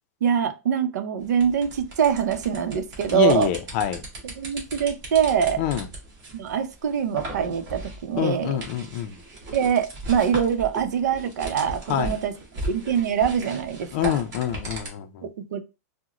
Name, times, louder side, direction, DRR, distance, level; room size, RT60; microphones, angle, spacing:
voice 1, 0.2-3.5 4.2-5.6 6.3-8.6 9.5-12.4 12.7-14.2 15.2-15.6, right 8 dB, 85° right, 0.6 m, -24 dB
sound 1, 1.2-14.9, right 1 dB, 35° right, 1.3 m, -38 dB
voice 2, 3.1-4.0 5.6-5.9 8.2-9.2 11.9-12.1 13.9-15.3, left 10 dB, 40° left, 0.4 m, -26 dB
3.7 x 2.1 x 2.9 m
supercardioid pair, 160°, 9 cm